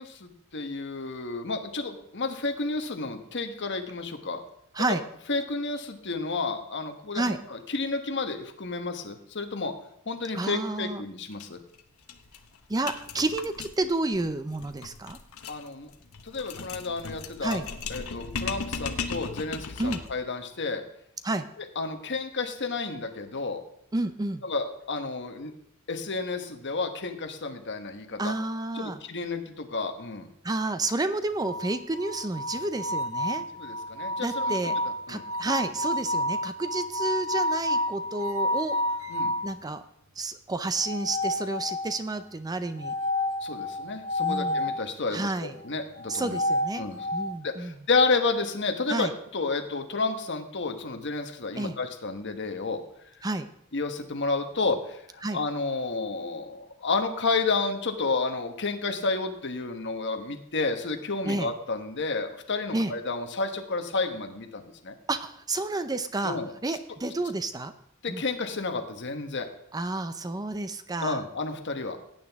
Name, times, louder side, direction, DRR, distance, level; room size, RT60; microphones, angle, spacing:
voice 1, 0.0-4.4 4.8-5.0 5.3-9.7 10.0-11.6 15.5-15.9 16.2-17.6 17.9-20.8 21.7-23.6 24.4-25.5 25.9-28.3 28.7-30.3 33.5-34.8 35.1-35.2 39.1-39.3 43.4-46.4 46.8-47.1 47.4-52.8 53.7-65.0 66.2-66.8 68.0-69.5 71.0-72.0, left 3 dB, 55° left, 6 dB, 1.2 m, -31 dB
voice 2, 10.3-11.0 12.7-15.2 17.4-17.7 19.8-20.0 21.2-21.5 23.9-24.4 28.2-29.0 30.4-33.5 34.2-34.8 35.1-38.8 39.4-39.8 40.2-42.9 44.2-44.8 45.1-45.6 46.1-46.9 47.1-47.7 48.9-49.1 51.6-51.8 53.2-53.5 55.2-55.4 61.2-61.5 62.7-62.9 65.1-67.7 68.1-68.2 69.7-71.2, right 2 dB, 20° right, 10 dB, 0.5 m, -30 dB
sound 1, 11.3-11.4 11.7-11.8 12.1-20.2, left 5 dB, 85° left, 0.9 m, -37 dB
sound 2, 31.4-39.5 40.8-42.1 42.8-44.8 46.0-47.3, left 1 dB, 75° right, 0.9 m, -30 dB
17.5 x 9.0 x 3.5 m, 0.74 s
head